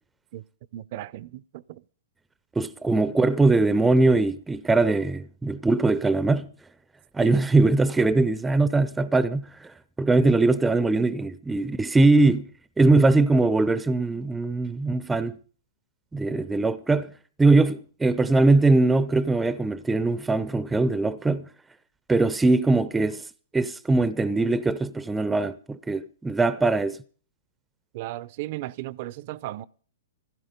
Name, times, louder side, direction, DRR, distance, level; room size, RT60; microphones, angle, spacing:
voice 1, 0.7-1.4 1.7-1.8 7.2-7.4 27.9-29.7, right 16 dB, 50° right, 0.7 m, -35 dB
voice 2, 2.6-6.5 7.1-9.7 10.0-12.4 12.8-15.4 16.1-17.1 17.4-21.4 22.1-23.2 23.5-27.0, right 3 dB, 10° right, 0.7 m, -21 dB
15.5 x 12.5 x 5.2 m
hypercardioid pair, 125°, 0 cm